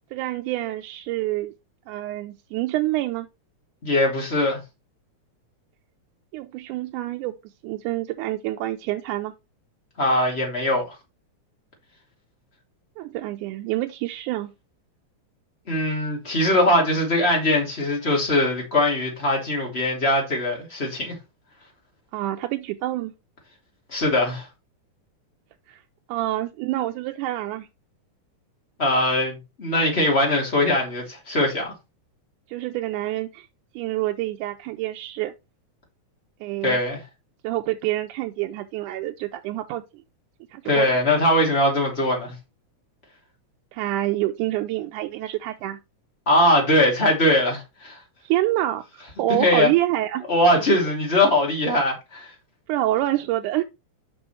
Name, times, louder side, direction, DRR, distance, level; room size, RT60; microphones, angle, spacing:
voice 1, 0.1-1.5 1.9-3.3 6.3-7.3 7.6-9.3 13.0-14.5 22.1-23.1 25.7-25.8 26.1-27.7 32.5-33.5 33.8-35.3 36.4-36.8 37.4-39.8 40.5-40.9 43.7-45.8 48.2-50.3 52.7-53.6, right 15 dB, 90° right, 2.1 m, -27 dB
voice 2, 3.8-4.6 10.0-10.9 15.7-21.2 23.9-24.5 28.8-31.7 36.6-37.0 40.6-42.3 46.3-48.0 49.3-49.7 50.3-52.3, left 1 dB, 20° left, 2.6 m, -21 dB
6.1 x 5.7 x 4.3 m
omnidirectional pair, 3.5 m